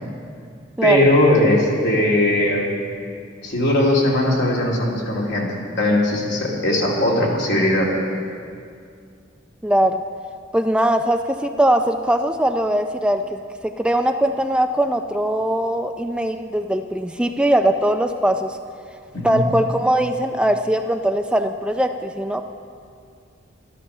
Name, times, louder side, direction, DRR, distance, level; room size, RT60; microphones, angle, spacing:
voice 1, 0.8-2.7 3.4-7.9 19.1-19.4, left 1 dB, 65° left, -3 dB, 2.7 m, -19 dB
voice 2, 9.6-10.0 10.5-18.6 19.2-22.4, right 1 dB, 5° right, 6 dB, 0.4 m, -20 dB
13.0 x 11.5 x 6.7 m, 2.3 s
head